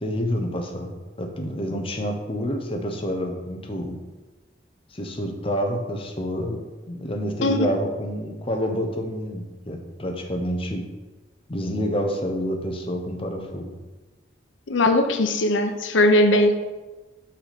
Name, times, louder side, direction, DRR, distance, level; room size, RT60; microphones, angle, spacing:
voice 1, 0.0-4.0 4.9-6.6 6.9-10.8 11.5-13.8, equal, 30° left, 3 dB, 0.9 m, -28 dB
voice 2, 14.7-16.5, left 1 dB, 90° left, 7 dB, 0.7 m, -19 dB
5.8 x 5.7 x 5.1 m, 1.2 s
head